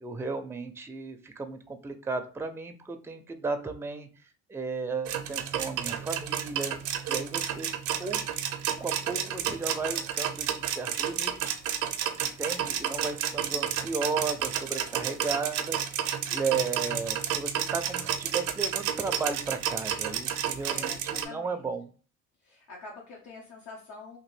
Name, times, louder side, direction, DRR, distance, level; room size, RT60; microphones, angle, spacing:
voice 1, 0.0-4.1 4.5-6.8 7.1-7.7 8.0-8.2 8.8-11.5 12.2-15.8 16.3-21.9, right 4 dB, 10° right, 7 dB, 0.4 m, -34 dB
sound 1, 5.1-21.2, right 9 dB, 80° right, 0.5 m, -31 dB
voice 2, 13.4-14.0 20.6-21.6 22.4-24.2, left 3 dB, 70° left, -3 dB, 0.9 m, -47 dB
2.9 x 2.5 x 3.1 m, 0.39 s
cardioid pair, 90°, 30 cm